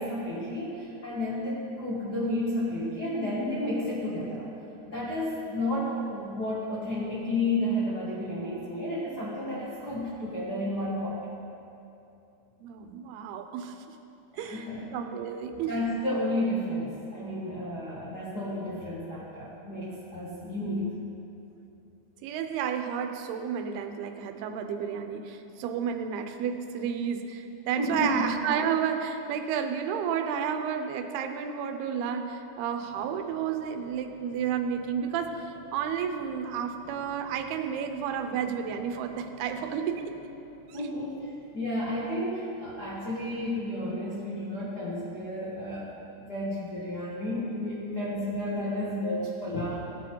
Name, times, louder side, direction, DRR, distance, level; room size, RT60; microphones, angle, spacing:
voice 1, 0.0-4.4 4.9-11.2 14.3-15.0 15.5-20.9 27.8-28.3 40.6-45.9 46.2-49.7, left 1 dB, 75° left, -7 dB, 0.9 m, -32 dB
voice 2, 12.6-14.0 14.4-14.7 14.9-15.8 22.2-40.1 40.7-40.8, right 7 dB, 80° right, 6 dB, 2.7 m, -31 dB
sound 1, 32.8-44.6, equal, 50° left, 3.6 m, -54 dB
16.5 x 9.3 x 4.6 m, 2.8 s
omnidirectional pair, 4.6 m